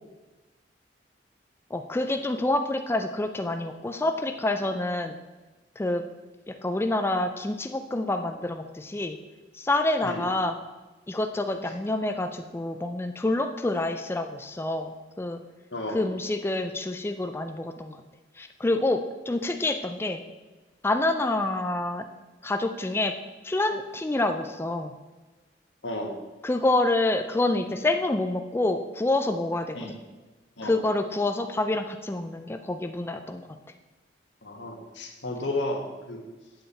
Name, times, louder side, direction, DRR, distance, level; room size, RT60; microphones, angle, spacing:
voice 1, 1.7-5.1 5.8-6.0 6.5-9.2 9.5-10.5 11.1-15.4 15.9-18.0 18.4-20.2 20.8-22.0 22.4-23.2 23.4-24.9 26.4-29.8 30.6-33.4, left 2 dB, 15° left, 6 dB, 0.3 m, -27 dB
voice 2, 25.8-26.2 29.7-30.0 30.6-30.8 34.4-36.2, left 1 dB, 85° left, 2 dB, 1.5 m, -33 dB
7.9 x 6.8 x 4.3 m, 1.2 s
head